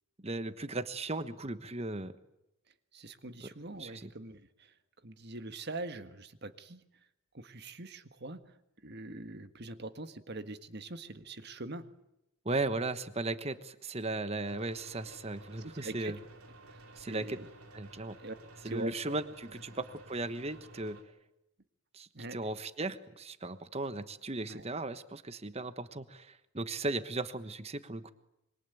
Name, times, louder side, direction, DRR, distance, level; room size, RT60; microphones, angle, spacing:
voice 1, 0.2-2.2 3.4-3.5 3.8-4.1 12.4-16.2 17.0-17.4 17.7-18.2 18.6-21.0 21.9-28.1, right 2 dB, 30° right, 12 dB, 1.2 m, -37 dB
voice 2, 2.9-4.7 5.0-6.8 7.3-8.4 8.8-11.9 15.6-16.2 16.7-17.5 18.2-18.3 18.6-18.9 22.1-22.4 24.4-24.6, right 2 dB, 50° right, 10 dB, 1.6 m, -43 dB
sound 1, 14.5-21.0, right 1 dB, 85° right, 3.8 m, -53 dB
26.0 x 24.0 x 9.2 m, 0.85 s
head